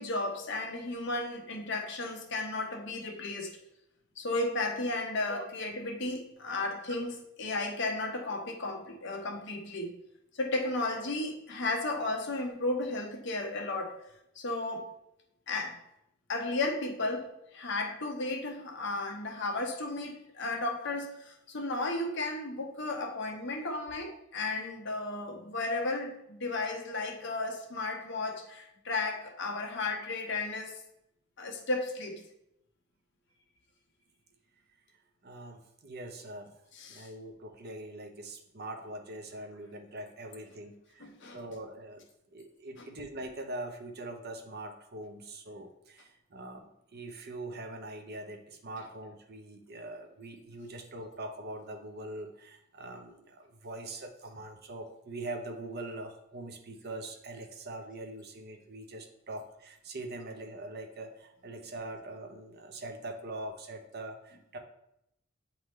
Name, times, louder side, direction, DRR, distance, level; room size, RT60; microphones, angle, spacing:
voice 1, 0.0-3.6 4.2-10.0 10.4-14.0 14.4-14.9 15.5-15.8 16.3-30.8 31.4-32.2 36.7-37.1 41.0-41.4 42.8-42.9, left 2 dB, 65° left, 2 dB, 0.9 m, -34 dB
voice 2, 35.2-36.5 36.9-42.0 42.3-64.6, right 2 dB, 50° right, 5 dB, 0.8 m, -43 dB
8.6 x 3.7 x 3.1 m, 0.80 s
head